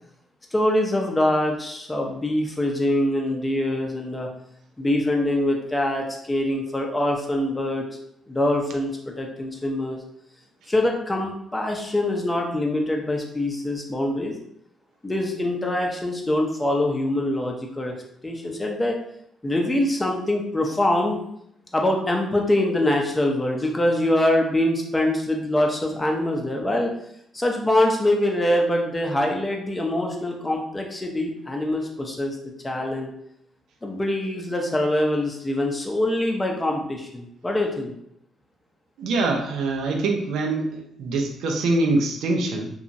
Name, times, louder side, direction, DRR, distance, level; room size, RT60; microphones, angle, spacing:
voice 1, 0.5-4.3 4.8-7.8 8.3-10.0 10.7-14.3 15.0-17.9 18.2-19.0 19.4-21.2 21.7-26.9 27.3-32.4 32.6-33.1 33.8-37.9, left 1 dB, 15° left, 1 dB, 0.6 m, -24 dB
voice 2, 39.0-42.7, right 2 dB, 80° right, 2 dB, 0.5 m, -24 dB
2.8 x 2.3 x 2.6 m, 0.74 s
cardioid pair, 90°, 0 cm